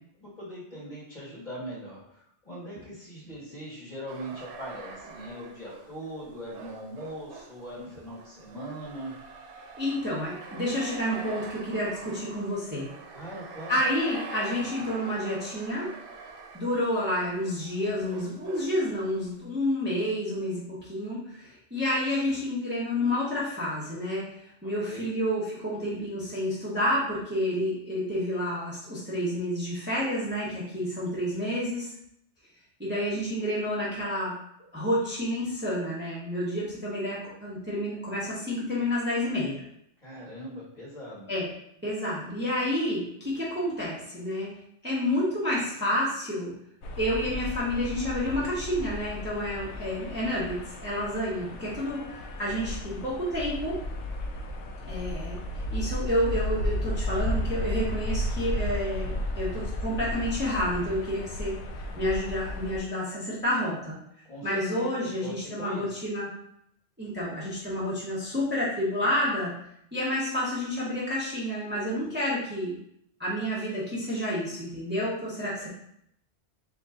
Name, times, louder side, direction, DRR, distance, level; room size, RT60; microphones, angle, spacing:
voice 1, 0.2-9.1 13.1-13.8 24.6-25.1 40.0-41.3 64.2-64.5 64.8-66.0, equal, 40° left, -6 dB, 1.6 m, -41 dB
sound 1, 4.1-19.4, right 4 dB, 75° right, 0.9 m, -45 dB
voice 2, 9.8-12.9 13.7-15.9 16.5-24.3 24.6-31.9 32.8-34.3 34.7-39.6 41.3-41.5 41.8-44.5 44.8-46.5 47.0-52.0 52.4-53.8 54.9-55.4 55.7-61.5 62.0-64.0 64.4-66.3 67.0-69.5 69.9-72.8 73.2-75.7, equal, 10° right, -8 dB, 1.0 m, -29 dB
sound 2, 46.8-62.8, left 1 dB, 80° left, 0.9 m, -33 dB
3.9 x 2.7 x 3.6 m, 0.73 s
omnidirectional pair, 1.2 m